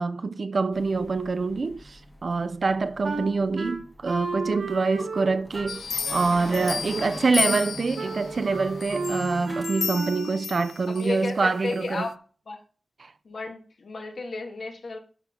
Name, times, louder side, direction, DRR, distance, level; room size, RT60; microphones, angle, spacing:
voice 1, 0.0-12.1 13.0-13.1, right 4 dB, 55° right, 0.6 m, -26 dB
sound 1, 0.7-9.6, left 1 dB, 10° left, 1.2 m, -42 dB
Wind instrument woodwind instrument, 3.0-10.5, right 3 dB, 75° right, 1.4 m, -33 dB
sound 2, 5.7-8.2 8.8-11.2 11.7-11.8, left 6 dB, 85° left, 0.3 m, -32 dB
voice 2, 10.9-12.1 12.5-12.6 13.2-15.0, left 3 dB, 70° left, 1.7 m, -33 dB
12.0 x 4.4 x 3.7 m
wide cardioid pair, 95°, 0 cm